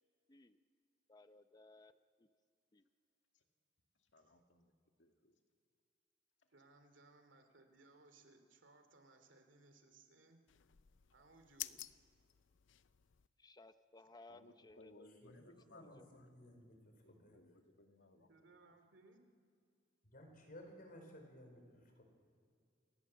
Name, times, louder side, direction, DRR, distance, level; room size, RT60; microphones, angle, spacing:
voice 1, 1.1-2.3 2.7-2.8 13.4-15.5 15.8-16.1, left 2 dB, 20° left, 11 dB, 0.7 m, -61 dB
voice 2, 4.1-4.7 5.0-5.4 14.3-16.3 17.0-18.3, left 2 dB, 70° left, 4 dB, 2.2 m, -63 dB
voice 3, 6.5-10.4 11.1-11.9 18.2-19.3, right 2 dB, 80° right, 6 dB, 2.6 m, -65 dB
sound 1, 10.5-13.3, left 14 dB, 90° left, 0.6 m, -51 dB
voice 4, 15.2-17.4 20.0-22.0, equal, 50° left, 4 dB, 4.8 m, -58 dB
29.0 x 18.5 x 7.4 m, 2.2 s
head